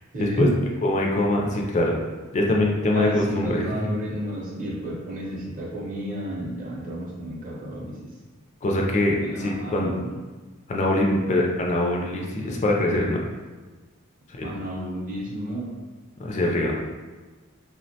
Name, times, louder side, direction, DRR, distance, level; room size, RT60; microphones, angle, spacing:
voice 1, 0.1-0.6 2.9-8.0 9.2-10.1 14.4-15.7, equal, 40° right, -4 dB, 0.6 m, -30 dB
voice 2, 0.8-2.0 2.3-3.8 8.6-9.9 10.7-13.2 14.3-14.5 16.2-16.8, left 1 dB, 35° left, -1 dB, 0.3 m, -23 dB
3.2 x 2.1 x 2.7 m, 1.3 s
head